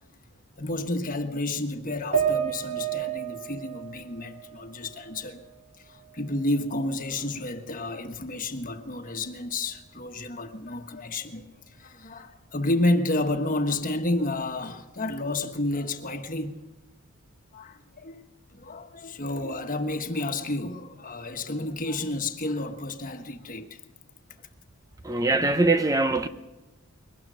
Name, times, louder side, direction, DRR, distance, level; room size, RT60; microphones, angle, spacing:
voice 1, 0.6-5.4 5.9-11.5 11.8-16.6 17.5-18.2 18.5-23.8 25.1-25.2, left 2 dB, 40° left, 1.4 m, -30 dB
sound 1, 2.1-5.5 5.9-7.0, right 8 dB, 35° right, 3.0 m, -32 dB
voice 2, 25.0-26.3, right 2 dB, 15° right, 0.6 m, -22 dB
22.5 x 19.0 x 6.3 m
head